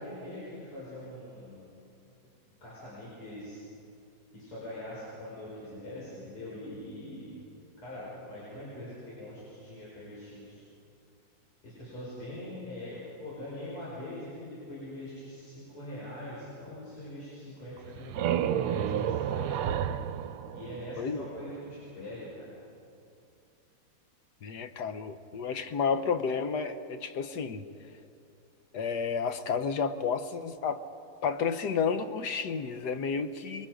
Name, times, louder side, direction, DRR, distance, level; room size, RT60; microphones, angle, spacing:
voice 1, 0.0-1.7 2.6-3.6 4.3-7.4 7.8-10.6 11.6-19.6 20.5-22.4, left 1 dB, 90° left, -8 dB, 6.4 m, -42 dB
sound 1, 17.8-21.4, right 9 dB, 90° right, 1.6 m, -31 dB
voice 2, 24.4-27.6 28.7-30.9 31.2-33.7, left 6 dB, 60° left, 9 dB, 1.3 m, -31 dB
25.5 x 22.5 x 5.1 m, 2.6 s
omnidirectional pair, 2.3 m